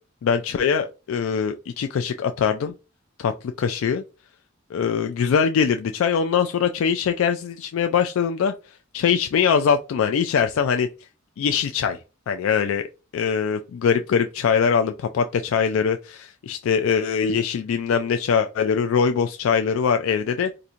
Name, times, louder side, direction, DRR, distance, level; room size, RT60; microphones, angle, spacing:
voice 1, 0.2-2.7 3.2-3.3 3.6-4.0 4.7-8.5 8.9-10.9 11.4-12.0 12.3-12.8 13.1-20.5, left 6 dB, 80° left, 0.3 m, -22 dB
4.2 x 2.6 x 2.5 m
head